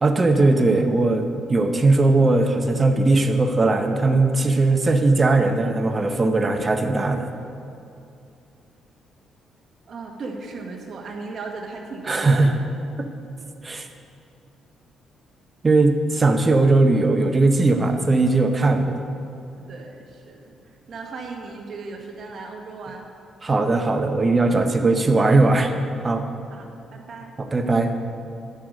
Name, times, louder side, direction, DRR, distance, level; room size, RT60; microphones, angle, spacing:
voice 1, 0.0-7.3 12.1-12.5 13.0-13.1 13.6-13.9 15.6-19.0 23.4-25.7 26.0-26.3 27.4-27.9, right 2 dB, 30° right, 6 dB, 0.8 m, -19 dB
voice 2, 9.9-12.5 19.6-20.5 20.9-23.1 23.6-23.8 26.5-27.3, right 4 dB, 55° right, 2 dB, 1.4 m, -37 dB
10.0 x 6.3 x 5.2 m, 2.6 s
cardioid pair, 90°, 0 cm